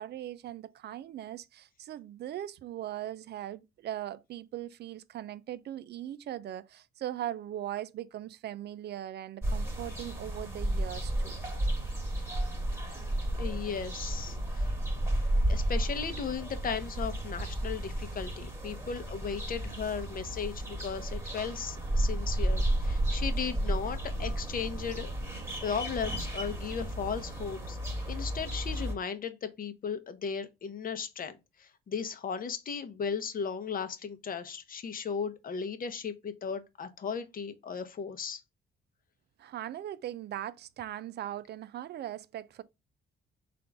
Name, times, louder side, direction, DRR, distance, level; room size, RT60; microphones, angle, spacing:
voice 1, 0.0-11.4 39.4-42.6, right 12 dB, 60° right, 0.4 m, -39 dB
sound 1, 9.4-28.9, right 1 dB, 15° right, 1.2 m, -32 dB
voice 2, 13.4-14.7 15.5-25.1 25.6-27.8 28.1-38.4, left 6 dB, 45° left, 0.8 m, -36 dB
3.7 x 2.5 x 4.5 m
cardioid pair, 90°, 20 cm